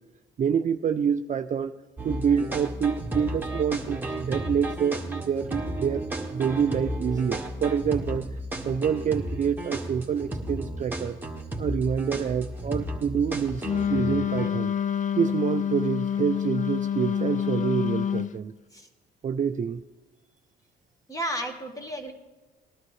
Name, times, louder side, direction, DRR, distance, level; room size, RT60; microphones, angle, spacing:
voice 1, 0.4-1.7 2.0-8.3 8.6-11.2 11.6-13.6 13.9-14.7 15.2-18.5 19.2-19.8, right 7 dB, 40° right, 8 dB, 0.4 m, -27 dB
sound 1, 2.0-14.5, right 1 dB, 10° right, 1.5 m, -33 dB
Wind instrument woodwind instrument, 13.6-18.4, left 8 dB, 40° left, 0.4 m, -27 dB
voice 2, 21.1-22.1, equal, 15° left, 4 dB, 1.8 m, -32 dB
20.0 x 12.0 x 3.2 m, 1.2 s
cardioid pair, 90°, 20 cm